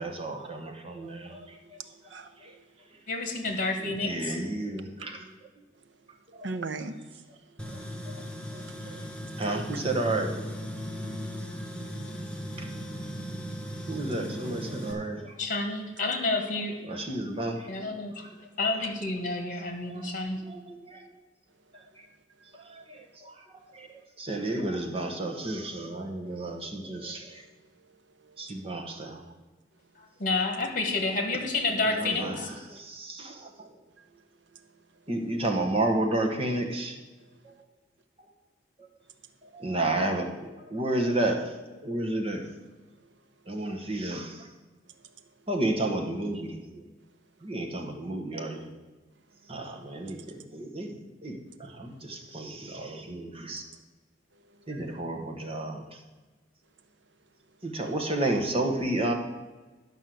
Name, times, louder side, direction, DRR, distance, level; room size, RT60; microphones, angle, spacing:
voice 1, 0.0-1.8 2.1-2.6 2.9-3.0 3.9-5.3 6.3-6.5 7.6-7.8 8.0-8.3 8.5-9.1 9.4-10.4 12.6-12.7 13.9-15.4 16.8-18.4 18.8-18.9 19.9-20.1 20.4-21.1 21.7-22.1 22.5-27.5 28.4-29.3 31.9-33.7 35.1-37.0 37.4-37.5 38.2-38.3 38.8-38.9 39.4-42.5 43.5-44.5 45.5-46.9 47.4-48.7 49.5-53.6 54.7-56.0 57.6-59.1, right 2 dB, 30° right, 1.2 m, -32 dB
voice 2, 1.1-2.7 5.8-6.1 6.4-7.2 7.5-7.7 8.5-8.7 9.2-9.6 13.8-13.9 21.7-21.9 27.3-28.5 34.0-34.2 34.5-34.8 37.2-37.3 43.0-43.1 44.9-45.1 50.3-50.4 53.5-53.8 54.3-54.8, right 3 dB, 75° right, 0.8 m, -43 dB
voice 3, 3.1-4.3 15.4-16.7 17.7-18.1 18.6-20.4 30.0-32.5, left 3 dB, 45° left, 1.8 m, -29 dB
Tools, 7.6-14.9, equal, 5° left, 1.2 m, -37 dB
11.5 x 5.4 x 7.7 m
head